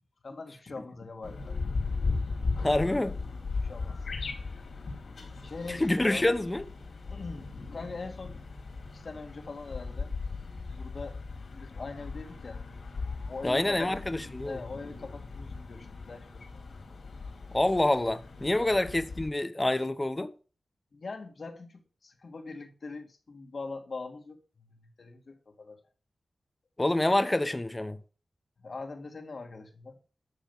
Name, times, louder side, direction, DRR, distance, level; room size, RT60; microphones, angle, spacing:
voice 1, 0.2-1.6 3.6-4.0 5.4-6.2 7.1-8.4 8.9-10.1 10.7-11.2 11.5-12.6 13.3-13.9 14.4-16.5 18.6-18.8 20.9-25.8 28.6-30.0, left 3 dB, 60° left, 2.4 m, -42 dB
sound 1, 1.2-19.3, left 4 dB, 80° left, 4.1 m, -37 dB
voice 2, 2.6-3.2 5.7-6.6 13.4-14.6 17.5-20.3 26.8-28.0, left 1 dB, 20° left, 1.1 m, -27 dB
12.0 x 6.4 x 7.4 m
wide cardioid pair, 70°, 0 cm